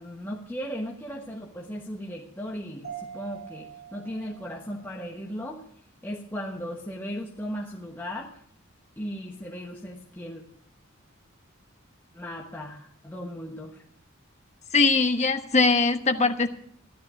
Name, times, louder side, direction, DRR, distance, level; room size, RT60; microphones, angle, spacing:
voice 1, 0.0-5.6 6.0-8.4 9.0-10.4 12.1-13.8, equal, 10° left, -2 dB, 1.2 m, -36 dB
Mallet percussion, 2.8-5.4, right 8 dB, 80° right, 5.7 m, -44 dB
voice 2, 14.7-16.5, left 3 dB, 35° left, 6 dB, 1.1 m, -21 dB
14.0 x 11.5 x 5.0 m, 0.67 s
head